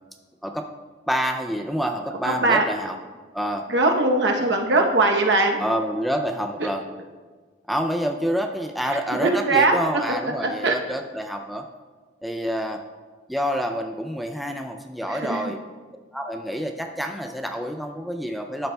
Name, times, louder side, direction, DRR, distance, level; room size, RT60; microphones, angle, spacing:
voice 1, 1.1-3.0 3.3-3.7 5.6-6.8 7.7-11.7 12.2-12.8 13.3-15.6 16.1-18.7, equal, ahead, 4 dB, 0.3 m, -27 dB
voice 2, 2.2-2.6 3.7-5.6 6.6-6.7 9.1-9.8 10.4-10.7 15.1-15.6, right 2 dB, 70° right, 2 dB, 0.9 m, -20 dB
12.0 x 6.7 x 2.2 m, 1.4 s
head